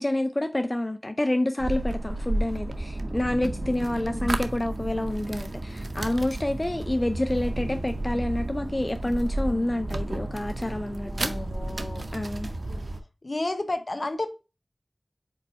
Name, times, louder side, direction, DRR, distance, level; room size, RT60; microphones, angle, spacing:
voice 1, 0.0-11.3 12.1-12.5, left 1 dB, 35° left, 0.5 m, -28 dB
sound 1, 1.6-13.0, right 1 dB, 85° right, 0.6 m, -32 dB
voice 2, 3.6-4.4 11.0-12.1 12.7-12.8 13.2-14.3, left 2 dB, 65° left, 1.0 m, -33 dB
5.2 x 4.5 x 4.2 m
wide cardioid pair, 50°, 0 cm